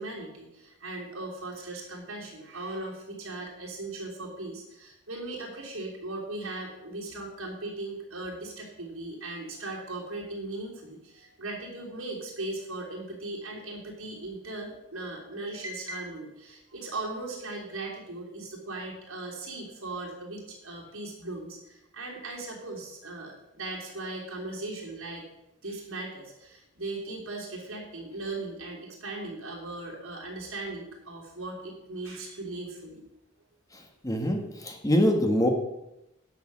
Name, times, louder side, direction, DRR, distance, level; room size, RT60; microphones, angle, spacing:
voice 1, 0.0-25.2 25.6-33.0, right 2 dB, 80° right, -3 dB, 3.3 m, -38 dB
voice 2, 33.7-35.5, equal, 15° left, 3 dB, 1.3 m, -25 dB
9.8 x 6.7 x 6.3 m, 0.89 s
head